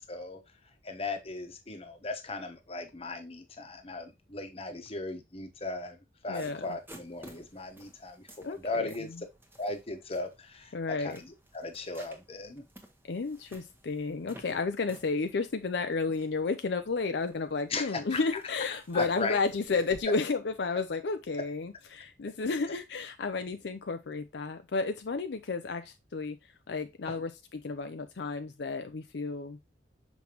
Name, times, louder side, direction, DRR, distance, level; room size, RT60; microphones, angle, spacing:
voice 1, 0.1-0.4 0.8-6.0 6.2-9.2 9.6-12.6 17.7-18.2 18.9-19.4 27.1-27.2, left 3 dB, 35° left, 1.1 m, -37 dB
voice 2, 6.3-6.7 8.4-8.9 10.7-11.2 13.1-26.4 26.7-29.6, left 4 dB, 70° left, 0.5 m, -32 dB
sound 1, 6.3-20.0, right 1 dB, 10° right, 1.1 m, -55 dB
6.3 x 5.2 x 3.0 m
head